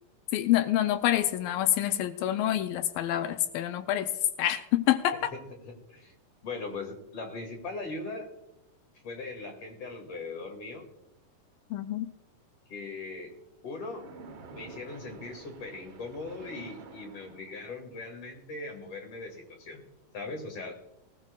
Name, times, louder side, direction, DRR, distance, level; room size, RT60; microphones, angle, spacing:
voice 1, 0.3-4.1 4.4-5.3 11.7-12.1, left 13 dB, 85° left, 9 dB, 2.4 m, -27 dB
voice 2, 5.6-6.1 6.4-8.3 9.0-10.8 12.7-13.3 13.6-14.1 14.5-19.8 20.1-20.8, left 3 dB, 45° left, 3 dB, 3.2 m, -39 dB
Splash splatter, 13.8-17.8, right 4 dB, 65° right, 1.2 m, -49 dB
19.0 x 17.5 x 2.4 m, 0.87 s
omnidirectional pair, 4.0 m